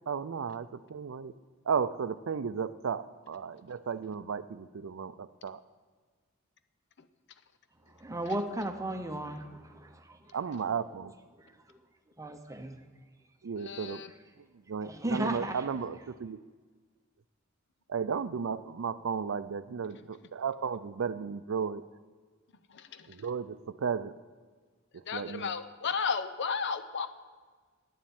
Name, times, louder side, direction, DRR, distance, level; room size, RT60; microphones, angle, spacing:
voice 1, 0.1-1.3 1.7-5.6 10.3-11.1 13.4-14.0 14.7-16.4 17.9-21.8 23.1-24.1 24.9-25.5, right 6 dB, 70° right, 15 dB, 0.4 m, -34 dB
voice 2, 7.9-10.4 11.4-11.8 12.2-12.8 14.8-15.7, right 1 dB, 15° right, 7 dB, 0.9 m, -36 dB
voice 3, 13.6-14.1 22.7-23.1 25.1-27.1, left 5 dB, 60° left, 10 dB, 0.7 m, -33 dB
10.0 x 7.4 x 8.8 m, 1.4 s
head